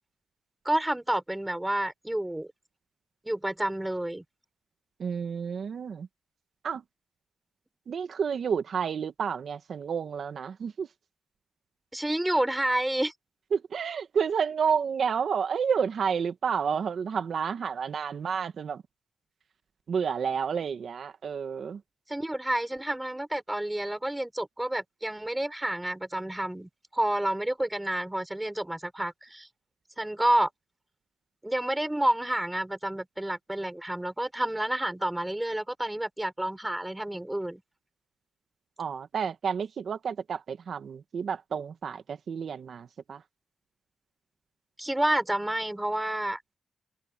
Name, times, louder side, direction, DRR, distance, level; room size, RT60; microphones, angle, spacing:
voice 1, 0.6-2.5 3.2-4.2 11.9-13.1 22.1-29.5 30.0-30.5 31.4-37.6 44.8-46.4, right 1 dB, 5° right, 4.7 m, -29 dB
voice 2, 5.0-6.1 6.6-6.8 7.9-10.9 13.5-18.8 19.9-21.8 38.8-43.2, right 6 dB, 55° right, 1.6 m, -30 dB
wide cardioid pair, 165°, 0 cm